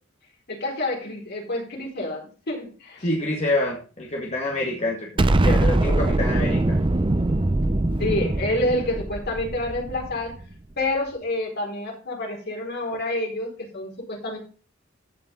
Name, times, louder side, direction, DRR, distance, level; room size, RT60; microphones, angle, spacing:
voice 1, 0.5-3.1 8.0-10.4 10.8-14.4, left 1 dB, 50° left, 1 dB, 4.3 m, -28 dB
voice 2, 3.0-6.8, left 1 dB, 35° left, -1 dB, 1.9 m, -27 dB
Explosion, 5.2-10.4, right 2 dB, 25° right, 0.6 m, -22 dB
14.5 x 5.7 x 3.8 m, 0.36 s
head